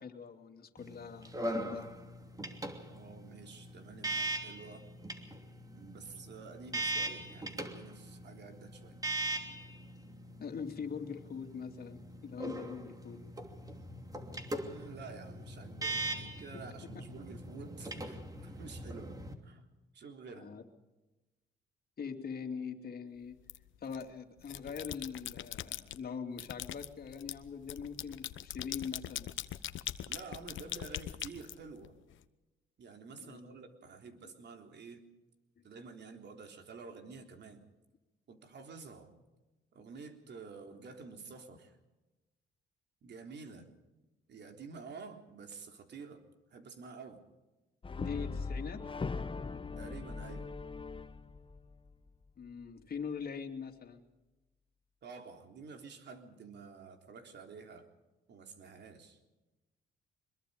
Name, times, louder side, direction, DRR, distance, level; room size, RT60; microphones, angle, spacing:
voice 1, 0.0-1.9 10.4-13.2 20.3-20.6 22.0-23.4 23.8-29.3 33.2-33.5 35.6-35.7 48.0-48.8 52.4-54.0, left 6 dB, 50° left, 4 dB, 2.8 m, -42 dB
sound 1, 0.8-19.3, right 2 dB, 20° right, 2.9 m, -41 dB
voice 2, 2.9-4.9 5.7-9.0 14.6-20.5 30.1-31.9 32.8-35.0 35.6-37.6 38.3-39.1 39.7-41.8 43.0-43.6 44.3-47.2 49.8-50.5 55.0-57.9 58.3-59.2, right 4 dB, 60° right, 4 dB, 3.6 m, -50 dB
sound 2, 23.5-24.0 24.4-26.0 26.4-32.1, left 12 dB, 75° left, 1.1 m, -42 dB
Brass instrument, 47.8-52.1, left 4 dB, 25° left, 1.1 m, -40 dB
24.0 x 22.0 x 5.1 m, 1.1 s
cardioid pair, 90°, 20 cm